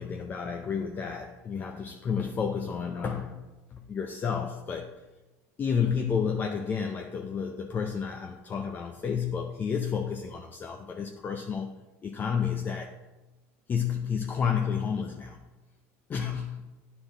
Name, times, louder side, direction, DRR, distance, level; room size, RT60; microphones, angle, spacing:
voice 1, 0.0-3.4 3.7-4.9 5.6-11.7 12.0-13.0 13.7-15.4 16.1-16.7, left 6 dB, 25° left, 3 dB, 0.5 m, -31 dB
9.6 x 4.3 x 3.8 m, 1.1 s
supercardioid pair, 120°, 7 cm